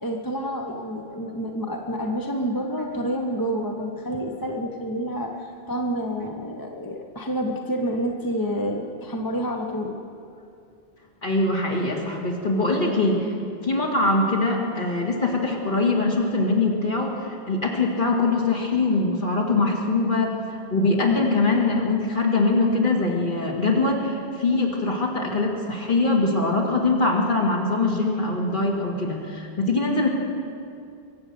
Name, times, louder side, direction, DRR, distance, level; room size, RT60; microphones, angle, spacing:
voice 1, 0.0-10.0, equal, 20° left, 2 dB, 0.9 m, -28 dB
voice 2, 11.2-13.3 13.6-30.1, left 3 dB, 50° left, -1 dB, 2.3 m, -23 dB
23.5 x 8.0 x 6.9 m, 2.4 s
omnidirectional pair, 1.1 m